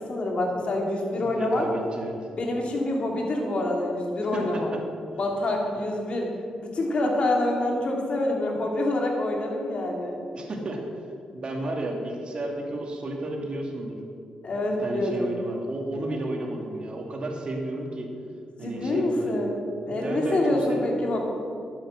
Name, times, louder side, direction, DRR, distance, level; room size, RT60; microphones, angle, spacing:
voice 1, 0.0-1.7 2.4-4.7 5.2-6.3 6.6-10.2 14.4-15.3 18.6-19.6 19.8-21.2, left 1 dB, 50° left, 0 dB, 2.8 m, -26 dB
voice 2, 1.2-2.3 4.3-4.8 5.1-5.2 5.7-5.8 10.3-10.8 11.3-14.0 14.8-18.1 18.6-19.3 19.8-20.8, right 1 dB, 45° right, 1 dB, 2.5 m, -32 dB
11.5 x 9.1 x 6.5 m, 2.5 s
cardioid pair, 80°, 2 cm